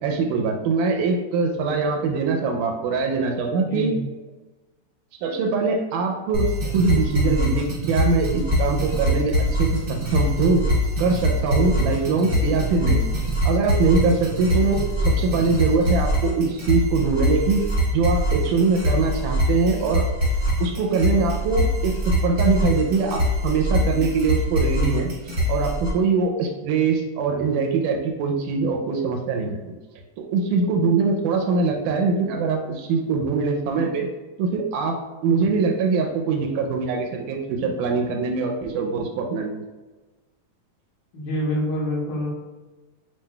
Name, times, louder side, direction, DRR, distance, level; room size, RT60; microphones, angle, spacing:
voice 1, 0.0-3.9 5.2-10.7 11.0-13.0 13.5-17.6 17.9-20.0 20.6-25.1 25.5-29.6 30.2-34.1 34.4-39.6, right 4 dB, 80° right, 3 dB, 1.9 m, -23 dB
voice 2, 3.5-4.0 41.1-42.3, equal, 75° left, -5 dB, 2.7 m, -26 dB
sound 1, 6.3-25.9, equal, 40° right, 0.7 m, -23 dB
7.4 x 2.6 x 2.2 m, 1.2 s
omnidirectional pair, 3.7 m